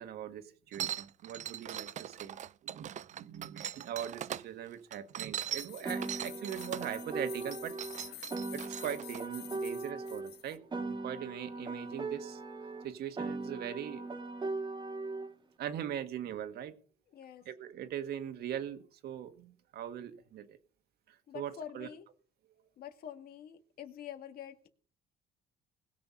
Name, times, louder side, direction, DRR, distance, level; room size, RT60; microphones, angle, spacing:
voice 1, 0.0-7.7 8.5-12.4 12.8-14.0 15.6-16.7 17.4-20.6 21.1-21.9, right 10 dB, 70° right, 9 dB, 1.7 m, -41 dB
sound 1, 0.7-4.4 4.9-6.9 7.4-9.2, right 10 dB, 45° right, 0.5 m, -40 dB
sound 2, 5.6-10.6, left 13 dB, 80° left, 1.3 m, -50 dB
Piano, 5.8-10.3 10.7-15.3, right 3 dB, 25° right, 1.9 m, -39 dB
voice 2, 17.1-17.4 21.3-22.1 22.8-24.7, left 9 dB, 65° left, 6 dB, 2.1 m, -46 dB
20.5 x 6.8 x 5.6 m, 0.43 s
cardioid pair, 110°, 17 cm